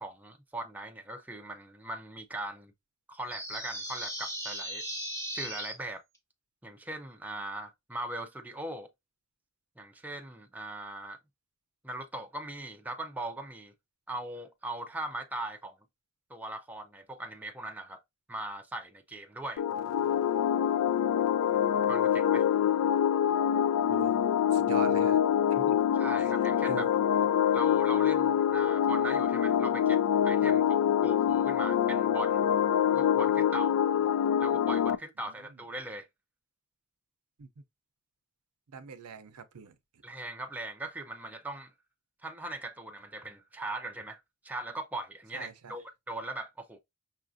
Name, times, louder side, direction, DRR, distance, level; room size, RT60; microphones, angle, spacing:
voice 1, 0.0-2.7 3.1-4.8 5.3-6.0 6.6-8.9 9.8-11.2 11.8-13.7 14.1-15.8 16.3-18.0 18.3-19.6 21.9-22.5 26.0-26.9 27.5-32.4 32.9-33.7 34.4-36.1 40.0-41.7 42.2-44.2 44.4-46.8, right 2 dB, 5° right, 0.4 m, -40 dB
sound 1, 3.3-5.7, equal, 15° left, 1.0 m, -37 dB
sound 2, 19.6-35.0, left 9 dB, 80° left, 0.3 m, -25 dB
voice 2, 24.5-25.2 25.5-25.8 26.2-26.3 26.7-26.9 35.2-35.6 37.4-37.5 38.7-39.8 45.3-45.8, right 5 dB, 85° right, 0.6 m, -41 dB
5.5 x 2.4 x 2.6 m
head